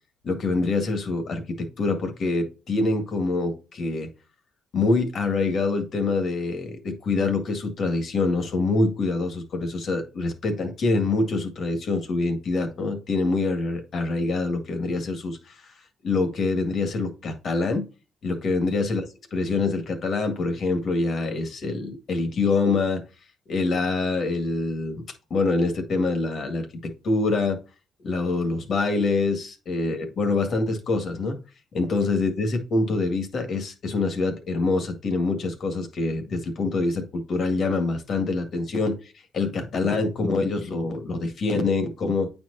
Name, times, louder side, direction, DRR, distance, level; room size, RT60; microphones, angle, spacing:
voice 1, 0.2-4.1 4.7-15.7 16.0-17.9 18.2-23.0 23.5-25.0 25.3-27.6 28.0-31.4 31.7-42.3, left 3 dB, 60° left, 6 dB, 1.9 m, -25 dB
9.1 x 4.5 x 2.7 m, 0.31 s
cardioid pair, 90°, 0 cm